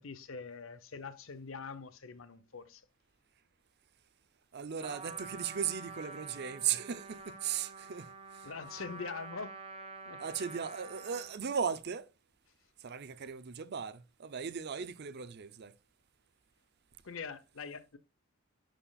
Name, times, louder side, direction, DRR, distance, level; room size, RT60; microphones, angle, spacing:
voice 1, 0.0-2.9 8.4-10.2 17.0-18.0, left 5 dB, 70° left, 0.8 m, -44 dB
voice 2, 4.5-8.5 10.2-12.1 12.8-15.7, right 7 dB, 50° right, 0.6 m, -37 dB
Trumpet, 4.8-11.4, right 3 dB, 30° right, 1.0 m, -48 dB
11.0 x 4.3 x 2.3 m
head